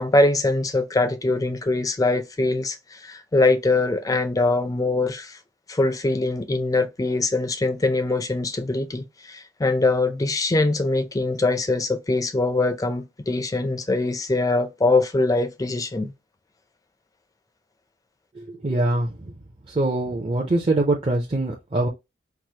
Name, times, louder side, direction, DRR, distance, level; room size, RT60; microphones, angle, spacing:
voice 1, 0.0-5.4 5.7-16.1, left 2 dB, 20° left, 0.4 m, -23 dB
voice 2, 18.4-19.1 19.7-21.9, right 2 dB, 30° right, 0.5 m, -23 dB
4.7 x 2.0 x 2.8 m
head